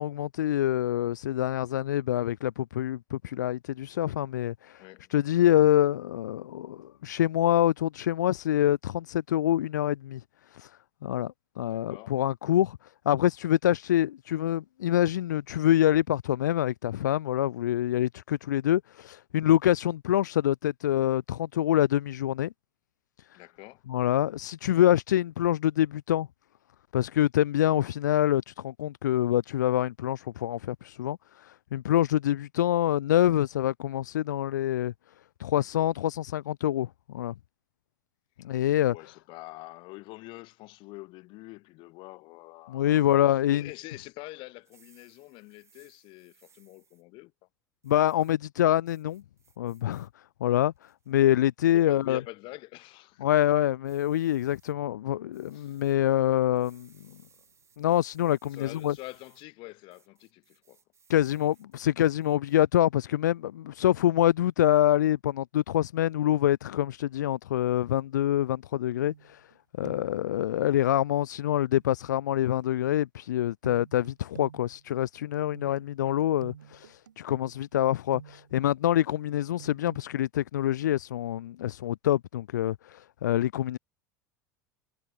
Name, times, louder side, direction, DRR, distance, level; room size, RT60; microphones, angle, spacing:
voice 1, 0.0-4.8 5.1-10.2 10.5-10.7 11.0-12.8 13.1-22.5 23.9-26.3 26.9-34.9 35.4-37.3 38.4-38.9 42.7-43.7 47.8-49.2 49.6-50.1 50.4-52.2 53.2-56.9 57.8-59.0 61.1-69.4 69.8-83.8, left 12 dB, 80° left, 0.5 m, -26 dB
voice 2, 4.8-5.1 11.7-12.2 23.3-23.8 38.9-47.3 51.7-53.3 55.5-55.8 58.5-60.8 75.6-76.2, left 23 dB, 55° left, 6.2 m, -46 dB
sound 1, 44.6-47.0 47.8-48.4 48.9-50.1 50.5-51.1 51.7-52.0 53.8-54.7 55.3-56.0 56.6-59.5 59.9-62.6, right 6 dB, 30° right, 6.3 m, -64 dB
sound 2, 69.1-69.6 69.8-70.3 71.7-71.9 73.6-78.6 79.6-80.0, right 8 dB, 85° right, 0.8 m, -49 dB
hypercardioid pair, 75°, 10 cm